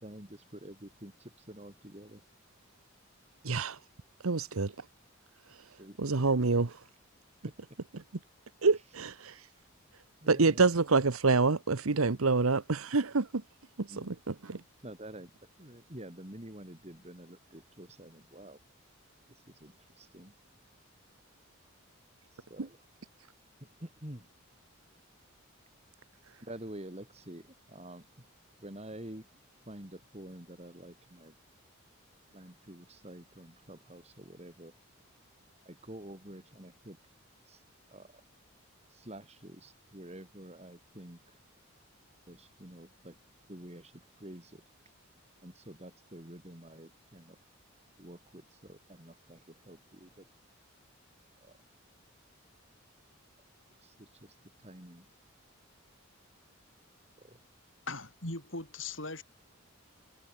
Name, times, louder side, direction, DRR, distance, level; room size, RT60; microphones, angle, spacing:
voice 1, 0.0-2.2 5.8-6.3 10.2-10.7 13.9-14.1 14.8-15.3 15.6-18.6 19.5-20.3 22.5-22.8 23.8-24.3 26.4-28.1 28.6-29.3 29.7-31.3 32.3-34.7 35.6-37.0 37.5-37.6 37.9-38.1 38.9-41.2 42.3-43.2 43.5-44.6 45.4-47.4 48.0-50.3 51.4-51.5 53.8-54.3 54.6-55.0 57.2-57.4, right 1 dB, 30° right, 3.1 m, -48 dB
voice 2, 3.4-3.8 4.2-4.7 6.0-6.7 7.9-8.0 8.6-9.3 10.3-13.3 13.8-14.6, right 4 dB, 80° right, 1.0 m, -27 dB
voice 3, 57.9-59.2, left 3 dB, 60° left, 8.0 m, -39 dB
head